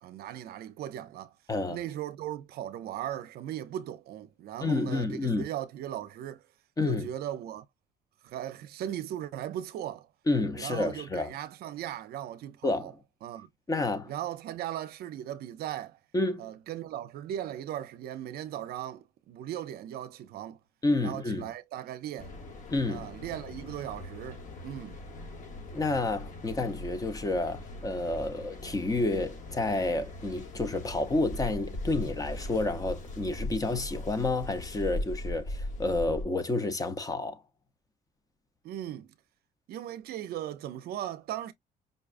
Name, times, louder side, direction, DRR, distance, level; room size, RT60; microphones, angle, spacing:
voice 1, 0.0-1.3 1.7-6.4 6.8-7.7 8.2-10.1 10.5-12.9 13.2-13.5 14.1-16.0 16.4-20.6 21.0-22.3 22.9-25.0 38.6-39.1 39.7-41.5, right 11 dB, 65° right, 0.5 m, -38 dB
voice 2, 1.5-1.8 4.6-5.4 6.8-7.1 10.3-11.3 12.6-12.9 13.7-14.1 16.1-16.5 20.8-21.5 22.7-23.1 25.7-37.4, left 2 dB, 20° left, 0.7 m, -30 dB
Mechanical fan, 22.2-36.2, left 1 dB, 45° left, 1.2 m, -40 dB
5.2 x 2.3 x 2.4 m
cardioid pair, 110°, 17 cm